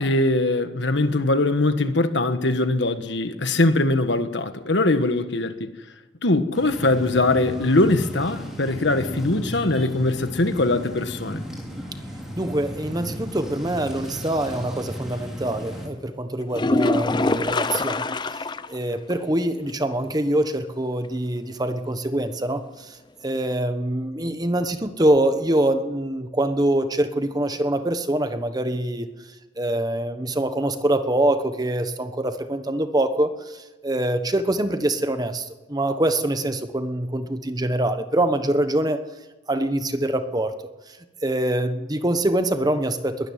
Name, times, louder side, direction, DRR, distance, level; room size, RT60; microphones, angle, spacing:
voice 1, 0.0-5.7 6.2-11.4, left 2 dB, 65° left, 1.5 m, -21 dB
sound 1, 6.5-15.9, equal, ahead, 4.8 m, -35 dB
voice 2, 12.4-18.0 18.7-22.6 23.2-29.1 29.6-39.0 39.5-40.5 41.2-43.3, right 1 dB, 20° right, 1.2 m, -24 dB
sound 2, 16.5-18.8 19.1-19.2 19.7-19.8 23.5-23.6, left 2 dB, 25° left, 0.6 m, -24 dB
21.0 x 13.0 x 9.4 m
head